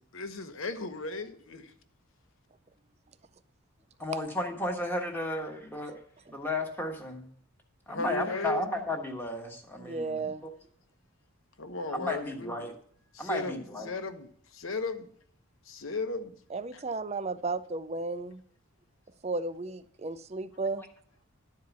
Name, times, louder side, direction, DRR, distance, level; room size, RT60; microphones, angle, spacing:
voice 1, 0.1-1.7 7.9-8.6 11.6-12.7 13.1-13.6 13.8-15.1 15.7-16.4 16.7-16.8, left 3 dB, 65° left, 1.0 m, -36 dB
voice 2, 4.0-6.0 6.3-7.3 7.9-10.5 11.9-12.7 13.2-13.9, left 1 dB, 10° left, 1.3 m, -34 dB
voice 3, 9.8-10.4 16.5-18.4 19.2-20.8, right 3 dB, 30° right, 0.4 m, -34 dB
11.5 x 4.7 x 7.0 m
head